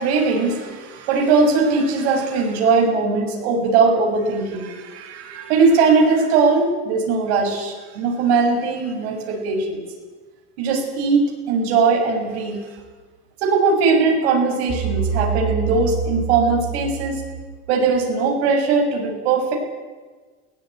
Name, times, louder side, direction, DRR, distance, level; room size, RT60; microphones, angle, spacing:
voice 1, 0.0-9.8 10.6-12.6 13.4-17.2 17.7-19.5, right 4 dB, 85° right, 1 dB, 7.2 m, -19 dB
sound 1, 14.7-17.8, right 6 dB, 45° right, 2.9 m, -26 dB
22.0 x 17.5 x 9.3 m, 1.4 s
supercardioid pair, 95°, 32 cm